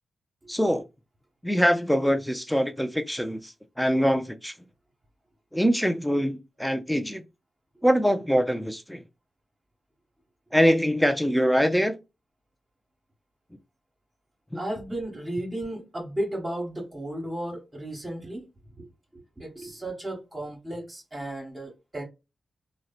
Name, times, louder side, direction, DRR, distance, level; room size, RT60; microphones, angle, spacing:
voice 1, 0.5-0.8 1.4-4.5 5.5-7.2 7.8-9.0 10.5-11.9 14.5-14.6, equal, 5° left, 0.5 m, -23 dB
voice 2, 14.5-18.4 18.8-18.9 19.1-22.0, right 1 dB, 25° right, 1.1 m, -34 dB
2.6 x 2.1 x 2.4 m
cardioid pair, 55°, 0 cm